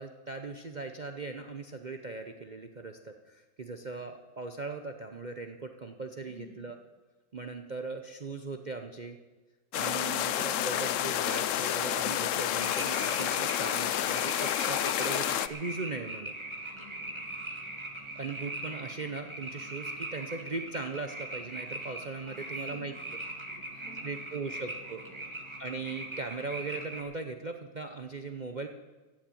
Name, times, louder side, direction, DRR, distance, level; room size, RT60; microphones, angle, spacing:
voice 1, 0.0-6.8 7.3-9.2 9.7-16.3 18.1-22.9 24.0-25.0 25.6-28.7, right 3 dB, 40° right, 6 dB, 0.6 m, -39 dB
voice 2, 6.2-6.7 16.7-17.2 22.2-23.1 23.4-24.7 25.0-25.2, left 1 dB, 80° left, -3 dB, 5.4 m, -54 dB
sound 1, 9.7-15.5, left 11 dB, 65° left, 0.8 m, -30 dB
sound 2, 12.6-27.0, right 2 dB, 20° right, 1.5 m, -41 dB
15.0 x 7.4 x 9.1 m, 1.2 s
omnidirectional pair, 1.7 m